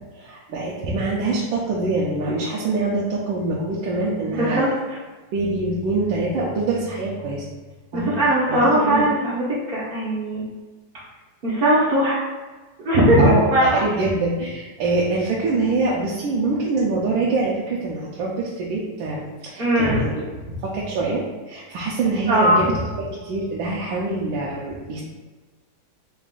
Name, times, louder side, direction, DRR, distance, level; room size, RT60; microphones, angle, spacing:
voice 1, 0.1-4.6 5.3-7.4 7.9-8.1 8.4-9.1 13.2-20.2 20.6-22.7 23.0-25.0, right 3 dB, 85° right, -5 dB, 1.4 m, -24 dB
voice 2, 4.3-4.7 7.9-10.5 11.4-12.2 12.8-13.8 19.6-20.0 22.3-22.7, right 1 dB, 60° right, -8 dB, 0.5 m, -19 dB
3.9 x 2.4 x 3.6 m, 1.3 s
omnidirectional pair, 2.1 m